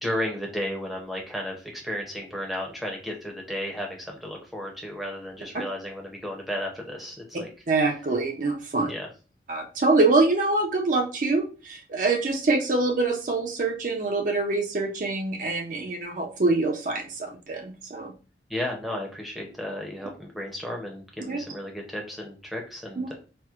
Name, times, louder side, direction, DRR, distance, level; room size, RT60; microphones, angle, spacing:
voice 1, 0.0-7.5 8.9-9.1 18.5-23.1, left 1 dB, ahead, 0 dB, 0.6 m, -33 dB
voice 2, 7.7-8.9 9.5-18.1 21.3-21.4 23.0-23.1, right 3 dB, 45° right, 2 dB, 0.4 m, -25 dB
4.3 x 2.0 x 2.4 m, 0.35 s
head